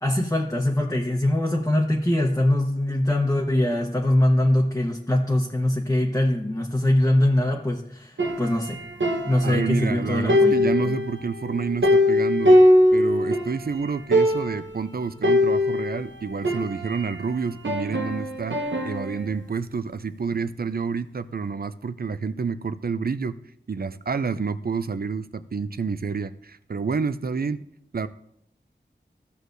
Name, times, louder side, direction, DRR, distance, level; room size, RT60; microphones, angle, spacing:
voice 1, 0.0-8.8 9.2-11.0, left 1 dB, 15° left, -1 dB, 1.0 m, -22 dB
sound 1, 8.2-9.9 10.3-13.6 13.8-13.9 14.1-14.7 15.2-17.2 17.6-19.3, left 1 dB, 80° right, 1.0 m, -21 dB
voice 2, 9.4-12.6 12.9-18.6 18.8-23.4 23.7-27.7 27.9-28.1, right 5 dB, 55° right, 13 dB, 0.5 m, -29 dB
14.5 x 6.4 x 2.6 m, 0.72 s
wide cardioid pair, 60°, 19 cm